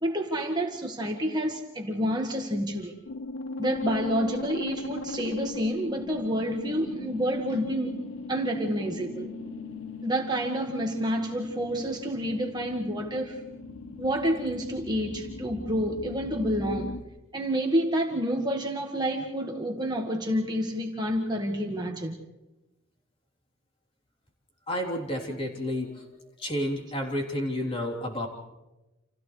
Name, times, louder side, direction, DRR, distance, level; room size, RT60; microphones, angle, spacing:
voice 1, 0.0-2.9 3.6-7.9 8.3-9.4 10.0-13.4 14.0-16.9 17.3-22.2, equal, 20° right, 1 dB, 1.7 m, -29 dB
sound 1, 3.1-17.0, left 2 dB, 70° left, 1.0 m, -39 dB
voice 2, 24.7-26.1 26.4-28.3, equal, 25° left, -1 dB, 3.4 m, -30 dB
30.0 x 28.5 x 3.3 m, 1.0 s
head